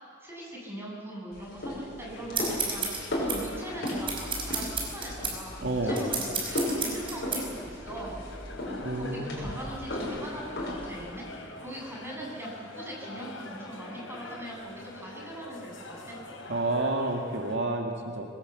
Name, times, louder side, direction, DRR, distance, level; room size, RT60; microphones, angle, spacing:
voice 1, 0.2-8.2 8.9-16.2, right 1 dB, 15° right, -3 dB, 7.1 m, -41 dB
sound 1, 1.3-11.1, left 1 dB, 60° left, 6.4 m, -35 dB
sound 2, 2.1-17.6, left 2 dB, 85° left, 4.1 m, -45 dB
sound 3, 2.3-7.4, right 4 dB, 30° right, 5.6 m, -32 dB
voice 2, 5.6-6.1 8.8-9.6 16.5-18.3, right 2 dB, 65° right, 1 dB, 1.9 m, -30 dB
23.5 x 20.5 x 8.3 m, 2.3 s
head